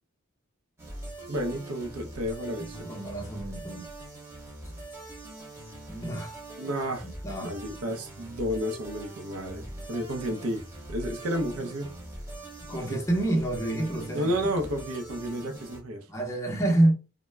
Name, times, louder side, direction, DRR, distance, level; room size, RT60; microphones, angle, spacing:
sound 1, 0.8-15.8, right 2 dB, 10° right, 0.9 m, -43 dB
voice 1, 1.3-2.9 6.6-7.1 7.4-10.6 10.9-11.9 12.9-13.0 14.1-16.0, equal, 70° right, 0.5 m, -31 dB
voice 2, 2.6-3.9 5.9-6.3 7.2-7.6 12.7-14.3 16.1-16.9, right 1 dB, 15° left, 0.6 m, -27 dB
2.1 x 2.0 x 3.2 m
head